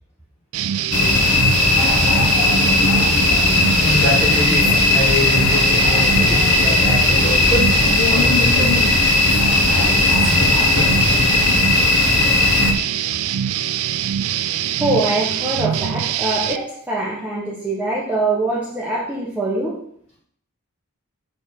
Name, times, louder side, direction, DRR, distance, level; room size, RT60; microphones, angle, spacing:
sound 1, 0.5-16.6, right 10 dB, 70° right, 0.4 m, -23 dB
sound 2, 0.9-12.7, left 4 dB, 90° left, 1.2 m, -17 dB
voice 1, 3.8-9.1, left 1 dB, 30° left, -4 dB, 2.3 m, -25 dB
voice 2, 14.8-19.8, right 2 dB, 5° right, -6 dB, 1.1 m, -23 dB
7.2 x 3.5 x 6.3 m, 0.64 s
head